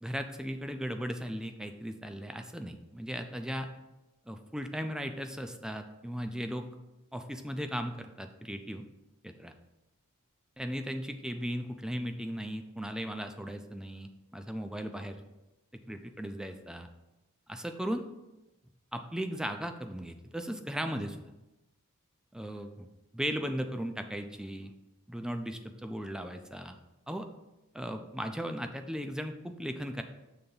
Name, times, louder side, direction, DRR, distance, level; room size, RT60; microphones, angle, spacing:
voice 1, 0.0-3.7 4.3-6.7 7.1-8.8 9.2-9.5 10.6-15.2 15.9-16.9 17.5-18.0 18.9-21.2 22.3-22.9 23.1-24.7 25.1-26.8 27.1-27.3 27.7-30.0, equal, 5° right, 6 dB, 0.4 m, -37 dB
6.7 x 3.4 x 5.4 m, 1.0 s
head